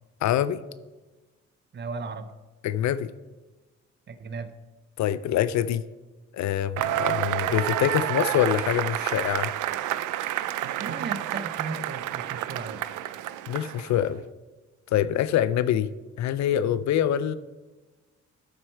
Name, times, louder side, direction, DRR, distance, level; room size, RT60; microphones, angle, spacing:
voice 1, 0.2-0.6 2.6-3.1 5.0-5.8 6.3-9.5 13.5-14.2 14.9-15.9 16.2-17.3, left 11 dB, 65° left, 16 dB, 0.5 m, -25 dB
voice 2, 1.7-2.3 4.1-4.5 10.8-12.8, right 4 dB, 35° right, 11 dB, 0.7 m, -35 dB
Cheering / Applause / Crowd, 6.8-14.0, right 14 dB, 80° right, 0.5 m, -29 dB
12.0 x 4.4 x 4.4 m, 1.2 s
cardioid pair, 90°, 30 cm